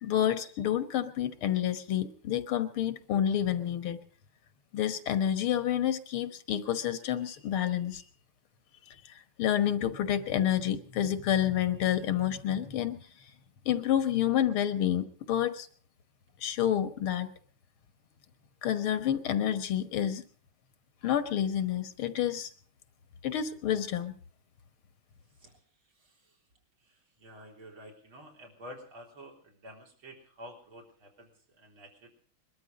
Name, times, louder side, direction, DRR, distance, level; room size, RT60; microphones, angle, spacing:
voice 1, 0.0-4.0 4.7-8.0 9.4-13.0 13.7-15.7 16.4-17.3 18.6-20.2 21.0-22.5 23.2-24.1, left 10 dB, 80° left, 11 dB, 2.1 m, -29 dB
voice 2, 26.0-26.4 26.8-32.1, equal, 75° right, 1 dB, 4.6 m, -50 dB
22.0 x 13.0 x 5.1 m, 0.43 s
omnidirectional pair, 2.3 m